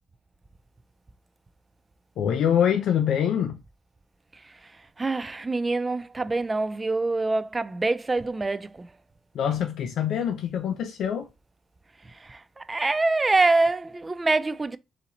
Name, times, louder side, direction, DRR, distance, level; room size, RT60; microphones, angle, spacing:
voice 1, 2.2-3.6 9.3-11.3, left 9 dB, 80° left, 0.5 m, -24 dB
voice 2, 5.0-8.9 12.2-14.8, right 3 dB, 25° right, 0.4 m, -25 dB
4.1 x 2.8 x 4.1 m
cardioid pair, 85°, 0 cm